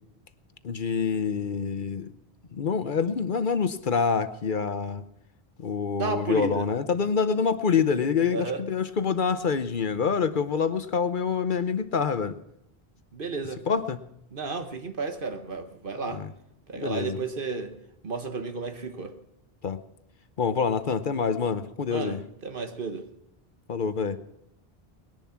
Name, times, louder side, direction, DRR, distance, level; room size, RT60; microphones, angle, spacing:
voice 1, 0.6-2.1 2.5-5.0 5.6-12.4 13.7-14.0 16.1-16.3 16.7-17.2 19.6-19.8 20.4-22.2 23.7-24.2, left 6 dB, 55° left, 0.9 m, -26 dB
voice 2, 6.0-6.7 8.3-8.6 13.1-13.7 14.3-16.3 16.7-17.8 18.0-19.2 21.9-23.1, right 4 dB, 60° right, 1.4 m, -32 dB
20.0 x 10.5 x 5.8 m
omnidirectional pair, 1.0 m